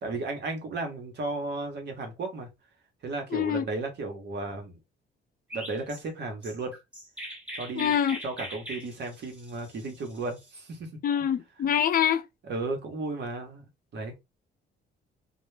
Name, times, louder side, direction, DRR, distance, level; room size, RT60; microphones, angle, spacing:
voice 1, 0.0-2.5 3.0-4.8 5.5-6.7 7.5-7.9 8.2-10.9 11.6-11.7 12.4-13.6 13.9-14.1, right 3 dB, 60° right, 0.9 m, -34 dB
voice 2, 3.3-3.6 7.7-8.2 11.0-12.3, left 9 dB, 45° left, 0.4 m, -25 dB
Chirp tweet, 5.5-10.6, equal, 5° right, 1.0 m, -42 dB
2.1 x 2.0 x 3.1 m
cardioid pair, 90°, 20 cm